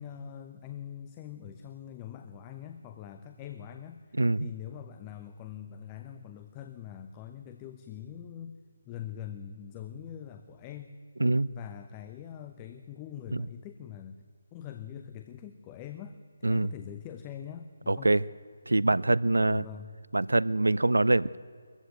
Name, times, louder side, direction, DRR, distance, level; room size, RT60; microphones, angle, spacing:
voice 1, 0.0-8.6 8.9-10.9 11.5-14.2 14.5-18.2 19.5-20.0, left 9 dB, 20° left, 8 dB, 0.8 m, -43 dB
voice 2, 4.1-4.5 11.2-11.5 13.3-13.4 16.4-16.7 17.9-18.2 18.7-19.6 20.1-21.4, right 2 dB, 85° right, 21 dB, 0.6 m, -24 dB
22.0 x 14.5 x 9.0 m, 2.1 s
figure-of-eight pair, 155°, 0 cm